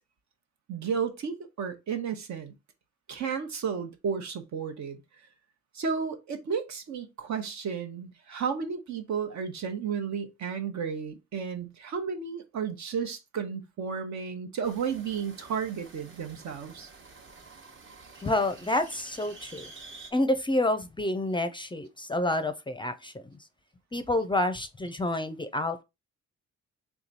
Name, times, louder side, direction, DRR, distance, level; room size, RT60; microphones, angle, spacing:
voice 1, 0.7-2.5 3.1-5.0 5.7-16.9, right 6 dB, 65° right, 1.1 m, -33 dB
sound 1, 14.6-20.1, right 3 dB, 40° right, 1.1 m, -49 dB
voice 2, 18.2-19.7 20.1-23.2 23.9-25.8, left 1 dB, 15° left, 0.5 m, -28 dB
3.5 x 3.0 x 4.0 m
cardioid pair, 90°, 30 cm